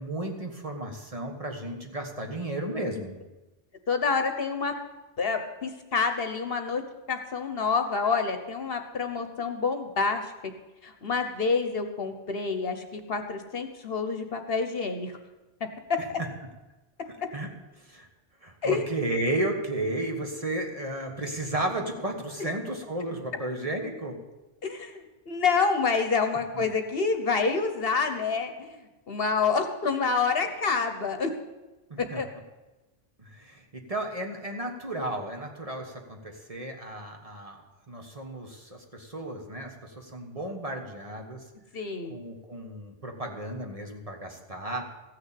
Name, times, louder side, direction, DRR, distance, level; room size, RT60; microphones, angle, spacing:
voice 1, 0.0-3.2 17.3-17.5 17.8-18.1 18.4-24.2 26.5-26.6 31.9-32.2 33.2-37.6 37.9-41.4 42.1-44.8, right 1 dB, 30° right, 2 dB, 1.5 m, -33 dB
voice 2, 3.9-4.7 5.2-6.8 7.1-10.3 10.8-15.1 15.9-16.0 18.6-18.8 24.6-31.3 32.1-32.3 41.7-42.2, left 5 dB, 55° left, 7 dB, 1.2 m, -28 dB
15.0 x 6.6 x 8.4 m, 1.1 s
omnidirectional pair, 1.2 m